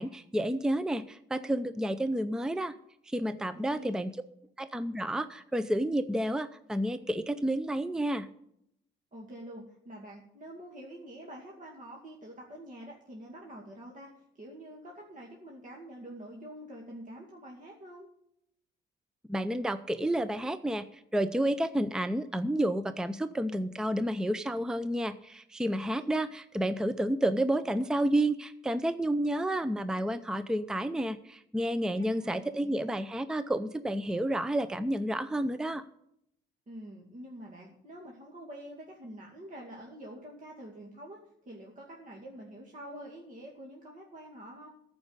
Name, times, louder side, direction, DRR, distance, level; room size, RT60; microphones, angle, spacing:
voice 1, 0.0-2.7 3.1-4.1 4.6-8.3 19.3-35.8, right 1 dB, 5° right, 12 dB, 0.5 m, -30 dB
voice 2, 3.5-3.9 9.1-18.1 26.0-26.1 32.0-33.0 36.7-41.2 41.5-44.7, right 1 dB, 40° right, -2 dB, 2.3 m, -46 dB
13.5 x 5.3 x 8.1 m, 0.74 s
cardioid pair, 90°, 20 cm